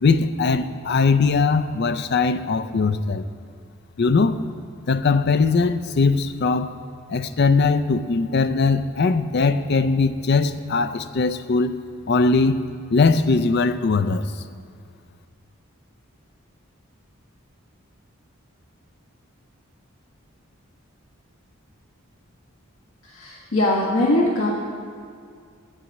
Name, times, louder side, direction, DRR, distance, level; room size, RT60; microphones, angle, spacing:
voice 1, 0.0-3.2 4.0-4.4 4.9-6.7 7.1-11.8 12.1-12.6 12.9-14.3, left 4 dB, 55° left, 11 dB, 0.4 m, -20 dB
voice 2, 23.0-24.5, left 1 dB, 75° left, -4 dB, 1.5 m, -21 dB
8.9 x 7.4 x 8.6 m, 2.2 s
head